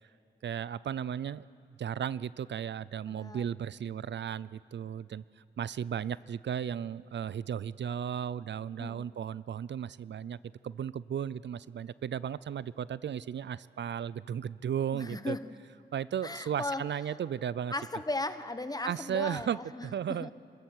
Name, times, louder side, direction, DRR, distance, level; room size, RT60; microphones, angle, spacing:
voice 1, 0.4-1.4 1.8-5.2 5.6-10.4 10.6-15.4 15.9-17.7 18.8-20.3, right 9 dB, 75° right, 19 dB, 0.4 m, -35 dB
voice 2, 3.1-3.5 8.8-9.2 14.9-15.5 16.2-16.8 17.7-20.3, left 2 dB, 20° left, 11 dB, 1.0 m, -37 dB
27.0 x 14.0 x 7.9 m, 2.6 s
wide cardioid pair, 75°, 19 cm